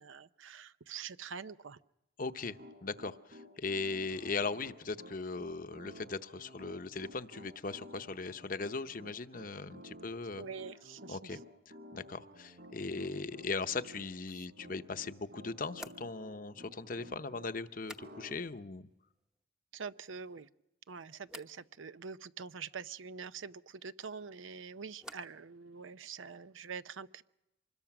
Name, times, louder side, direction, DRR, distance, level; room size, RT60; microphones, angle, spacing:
voice 1, 0.0-1.8 10.4-11.4 19.7-20.5 20.9-27.2, right 6 dB, 85° right, 14 dB, 0.7 m, -45 dB
voice 2, 2.2-2.6 2.8-10.4 11.1-11.4 11.9-18.9, left 4 dB, 45° left, 11 dB, 0.8 m, -39 dB
Piano, 2.3-17.5 18.0-18.4, equal, 55° right, 7.2 m, -53 dB
sound 1, 15.7-18.6 18.8-19.5 19.8-20.4 21.3-21.6 24.0-25.5 25.7-26.4, equal, 5° right, 0.9 m, -55 dB
25.0 x 21.0 x 6.0 m, 0.93 s
head